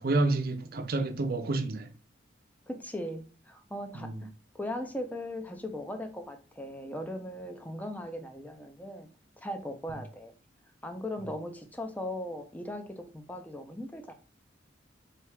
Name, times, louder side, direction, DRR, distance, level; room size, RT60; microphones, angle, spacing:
voice 1, 0.0-1.9 3.9-4.3, right 2 dB, 55° right, 0.6 m, -29 dB
voice 2, 2.7-4.3 4.5-9.1 9.4-10.3 10.8-14.1, left 1 dB, 10° left, 0.5 m, -38 dB
3.4 x 2.8 x 4.6 m
head